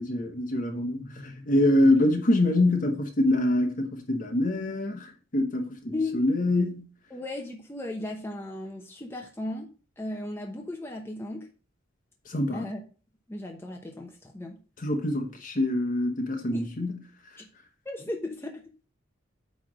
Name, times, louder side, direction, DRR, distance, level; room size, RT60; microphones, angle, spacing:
voice 1, 0.0-6.8 12.3-12.7 14.8-17.0, left 1 dB, 45° left, 1.1 m, -25 dB
voice 2, 5.9-6.2 7.1-9.7 10.0-11.5 12.5-12.8 13.3-14.6 16.5-16.7 17.4-17.5 17.8-18.7, left 2 dB, 15° left, 0.9 m, -35 dB
8.7 x 3.5 x 6.2 m
head